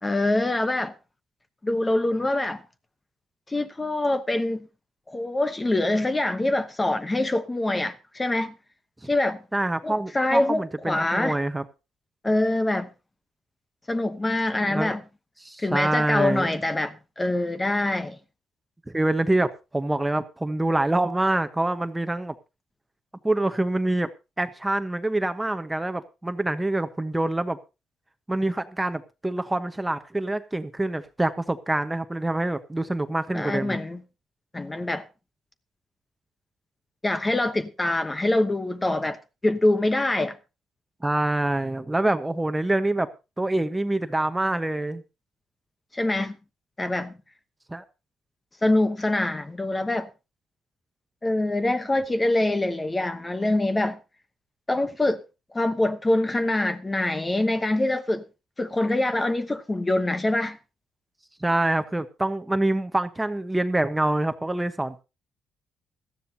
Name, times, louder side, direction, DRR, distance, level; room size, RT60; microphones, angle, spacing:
voice 1, 0.0-0.9 1.6-2.6 3.5-4.7 5.1-8.5 9.1-9.4 9.8-11.4 12.2-12.9 13.9-15.0 15.6-18.2 33.3-34.0 34.5-35.0 37.0-39.2 39.4-40.4 45.9-46.4 46.8-47.1 48.6-50.1 51.2-54.0 54.7-55.2 55.5-58.2 58.6-60.6, left 2 dB, 20° left, 1.0 m, -24 dB
voice 2, 9.5-11.6 14.6-15.0 15.4-16.5 18.9-22.3 23.2-24.1 24.4-27.6 28.3-33.8 41.0-43.1 43.4-45.0 47.7-47.8 61.4-65.0, right 2 dB, 10° right, 1.1 m, -26 dB
17.0 x 13.0 x 2.8 m
cardioid pair, 90°, 0 cm